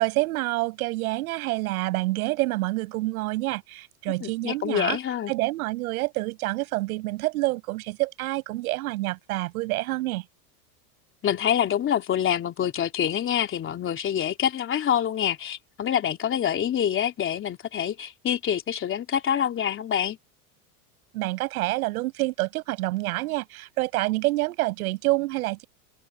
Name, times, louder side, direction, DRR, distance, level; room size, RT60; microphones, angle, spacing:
voice 1, 0.0-5.0 5.3-10.2 21.1-25.6, right 20 dB, 75° right, 7.6 m, -27 dB
voice 2, 4.2-5.3 11.2-20.2, left 9 dB, 30° left, 3.3 m, -26 dB
supercardioid pair, 140°, 43 cm